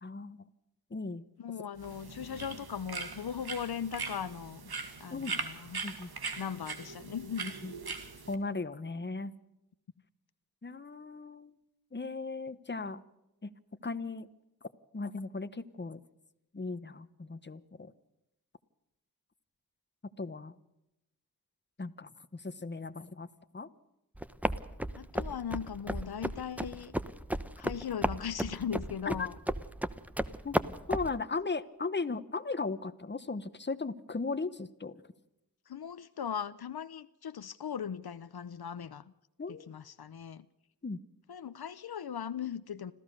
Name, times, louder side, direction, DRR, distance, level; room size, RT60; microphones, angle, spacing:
voice 1, 0.0-0.5 0.9-1.2 5.1-5.3 5.8-6.1 7.4-7.7 8.3-9.3 10.6-11.6 11.9-13.0 13.4-13.5 13.8-14.3 14.9-16.0 16.5-17.9 20.2-20.5 21.8-23.3 23.5-23.7 29.2-29.3 30.4-30.6 30.9-34.9 39.4-39.7 40.8-41.0, left 3 dB, 30° left, 1.1 m, -37 dB
voice 2, 1.4-4.7 5.0-5.8 6.4-7.5 24.9-26.9 27.6-29.4 35.7-39.1 39.5-40.5 41.3-42.9, left 8 dB, 85° left, 0.8 m, -39 dB
sound 1, 1.8-8.3, right 4 dB, 85° right, 2.0 m, -41 dB
sound 2, 24.2-31.2, right 1 dB, 5° right, 0.9 m, -34 dB
26.5 x 15.0 x 6.6 m
wide cardioid pair, 65°, 37 cm